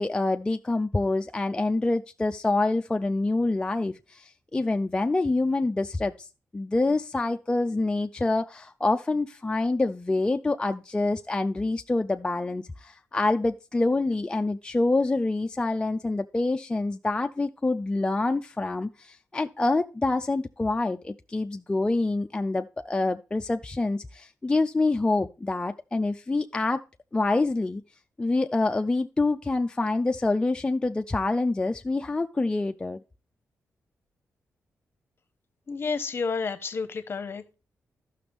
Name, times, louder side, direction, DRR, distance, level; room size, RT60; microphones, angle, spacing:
voice 1, 0.0-6.3 6.5-26.8 27.1-27.8 28.2-33.0, left 2 dB, 15° left, 0.3 m, -26 dB
voice 2, 35.7-37.5, left 5 dB, 45° left, 0.8 m, -30 dB
12.5 x 5.8 x 3.4 m
cardioid pair, 90°, 5 cm